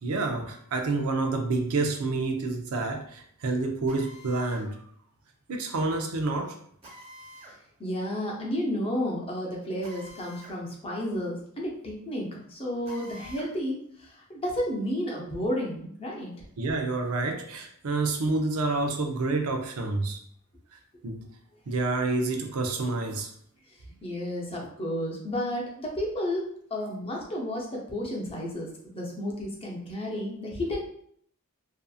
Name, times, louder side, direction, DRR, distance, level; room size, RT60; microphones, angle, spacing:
voice 1, 0.0-4.8 5.5-6.6 16.6-20.2 21.0-21.3 21.7-23.3, right 3 dB, 75° right, 4 dB, 0.5 m, -28 dB
Drill, 3.9-4.7 6.8-7.6 9.8-10.6 10.9-11.0 12.8-13.5, equal, 25° right, 0.7 m, -48 dB
voice 2, 7.8-16.4 24.0-30.8, equal, 25° left, -2 dB, 0.6 m, -32 dB
2.6 x 2.4 x 2.3 m, 0.64 s
head